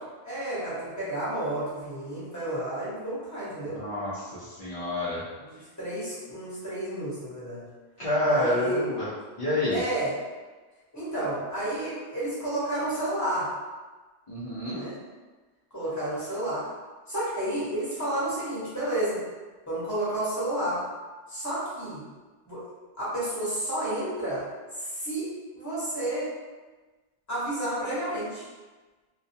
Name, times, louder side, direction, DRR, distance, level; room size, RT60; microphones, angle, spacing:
voice 1, 0.2-3.9 5.4-7.7 8.2-8.9 9.7-10.1 10.9-13.5 14.7-15.0 15.7-16.7 17.1-19.2 19.7-20.9 21.3-22.0 22.5-22.6 23.0-24.5 24.8-26.3 27.3-28.5, right 1 dB, 15° left, -10 dB, 0.9 m, -31 dB
voice 2, 3.6-5.2 8.0-9.1 9.4-9.8 14.3-14.9, left 1 dB, 45° left, -11 dB, 0.4 m, -28 dB
2.3 x 2.1 x 2.6 m, 1.3 s
omnidirectional pair, 1.1 m